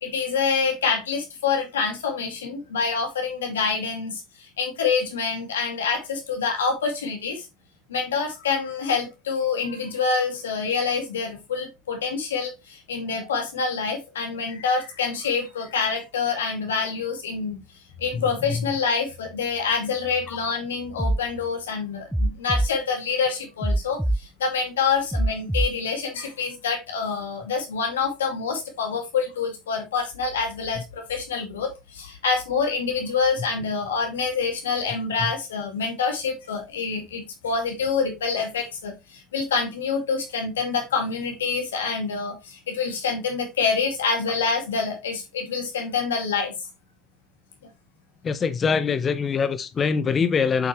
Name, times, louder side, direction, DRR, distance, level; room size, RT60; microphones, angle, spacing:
voice 1, 0.0-4.2 4.6-7.5 7.9-17.6 18.0-46.5, left 5 dB, 85° left, 2.2 m, -26 dB
sound 1, 21.0-21.2 22.1-22.7 23.6-24.2 25.1-25.7, right 1 dB, 5° right, 0.4 m, -23 dB
voice 2, 48.2-50.7, left 6 dB, 30° left, 0.7 m, -23 dB
7.7 x 5.6 x 3.0 m
hypercardioid pair, 80°, 0 cm